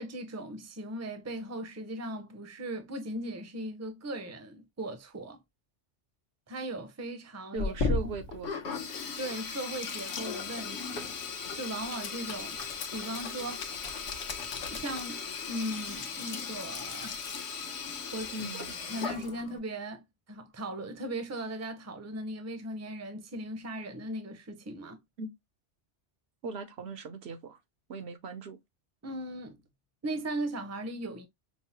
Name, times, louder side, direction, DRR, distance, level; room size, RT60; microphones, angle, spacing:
voice 1, 0.0-5.4 6.5-7.7 9.2-11.1 11.5-12.6 12.9-13.6 14.7-17.3 18.1-18.6 18.9-20.0 20.3-25.0 29.0-29.6 30.0-31.3, right 1 dB, 20° right, 0.6 m, -38 dB
voice 2, 7.5-8.8 18.3-18.7 25.2-25.3 26.4-27.6 27.9-28.6, right 3 dB, 65° right, 0.9 m, -39 dB
Sink (filling or washing), 7.6-19.6, left 5 dB, 70° left, 1.0 m, -36 dB
5.4 x 2.0 x 2.8 m
omnidirectional pair, 1.2 m